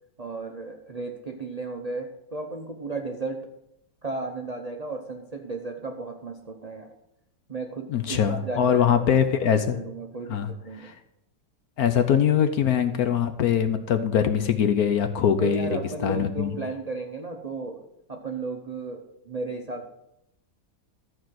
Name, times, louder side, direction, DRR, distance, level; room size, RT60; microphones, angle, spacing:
voice 1, 0.2-3.5 4.0-6.9 7.5-9.0 9.4-10.9 15.3-17.8 18.1-19.9, right 3 dB, 50° right, 3 dB, 0.4 m, -34 dB
voice 2, 7.9-9.8 10.3-10.5 10.8-10.9 11.8-16.5, left 8 dB, 65° left, 8 dB, 1.1 m, -22 dB
12.5 x 4.7 x 7.6 m, 0.83 s
omnidirectional pair, 2.0 m